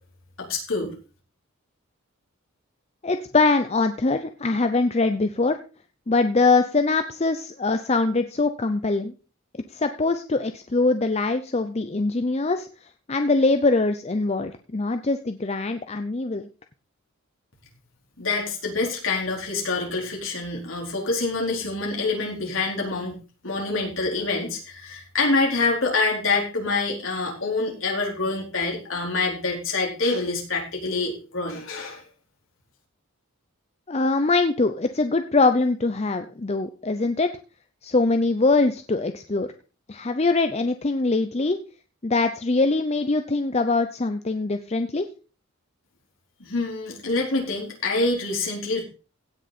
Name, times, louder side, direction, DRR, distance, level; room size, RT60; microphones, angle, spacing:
voice 1, 0.4-0.9 18.2-32.0 46.4-48.8, left 3 dB, 60° left, -1 dB, 4.2 m, -26 dB
voice 2, 3.0-5.6 6.1-9.1 9.7-16.5 33.9-37.3 37.8-39.5 39.9-41.6 42.0-45.1, left 3 dB, 30° left, 8 dB, 0.6 m, -23 dB
16.5 x 6.5 x 4.2 m, 0.34 s
head